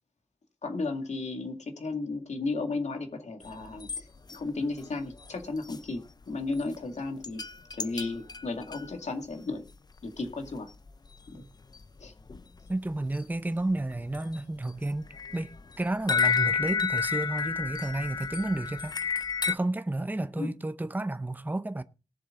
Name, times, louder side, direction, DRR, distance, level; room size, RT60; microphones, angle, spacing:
voice 1, 0.6-7.4 7.8-9.6 10.0-10.7 11.3-11.4 12.0-12.1 20.4-20.5, left 3 dB, 75° left, 2.2 m, -34 dB
sound 1, 3.4-4.0 4.3-4.4 4.8-4.9 5.1-5.8 6.2-6.3 6.5-6.8 7.2-8.9 9.7-9.8 10.0-10.2 10.5-10.6 10.9-11.1 11.4-11.5 11.7-12.7 13.1-13.2 13.6-14.4 14.8-19.5, left 6 dB, 35° left, 0.6 m, -31 dB
voice 2, 12.7-15.0 15.3-19.1 19.4-21.8, right 2 dB, 15° right, 0.7 m, -31 dB
18.5 x 7.3 x 3.8 m
wide cardioid pair, 115°, 12 cm